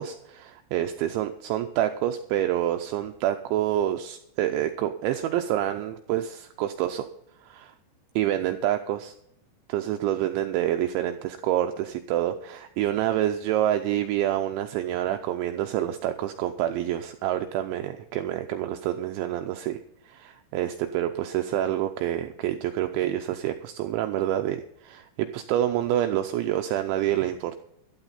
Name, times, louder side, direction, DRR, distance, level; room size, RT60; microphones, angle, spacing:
voice 1, 0.0-7.1 7.4-7.7 8.2-9.1 9.7-19.8 20.0-27.6, right 12 dB, 80° right, 6 dB, 2.8 m, -27 dB
13.5 x 12.0 x 4.0 m, 0.76 s
omnidirectional pair, 5.7 m